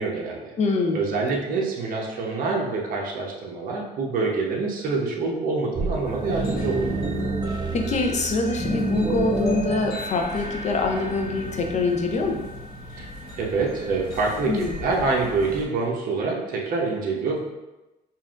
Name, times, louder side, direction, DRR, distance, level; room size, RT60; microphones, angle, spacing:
voice 1, 0.0-0.5 0.9-6.9 12.9-13.1 13.4-17.4, right 3 dB, 55° right, -1 dB, 0.9 m, -26 dB
voice 2, 0.6-1.1 7.7-12.4 14.5-14.8, left 3 dB, 45° left, 3 dB, 0.6 m, -24 dB
sound 1, 5.7-8.3 8.6-10.0, right 2 dB, 25° right, 0.6 m, -27 dB
sound 2, 6.0-15.6, right 1 dB, 65° left, 1.1 m, -36 dB
sound 3, 9.9-14.2, right 1 dB, ahead, 1.2 m, -43 dB
5.4 x 2.6 x 2.5 m, 1.0 s
cardioid pair, 110°, 17 cm